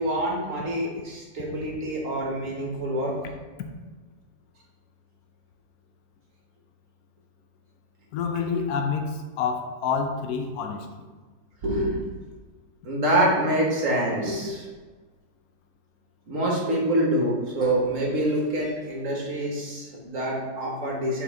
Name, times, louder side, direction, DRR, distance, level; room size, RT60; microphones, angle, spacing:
voice 1, 0.0-3.2 11.6-12.0 12.8-14.6 16.3-21.2, right 1 dB, 50° right, -2 dB, 1.5 m, -26 dB
voice 2, 8.1-11.1, left 5 dB, 65° left, 5 dB, 1.0 m, -28 dB
7.0 x 4.3 x 4.0 m, 1.3 s
omnidirectional pair, 2.0 m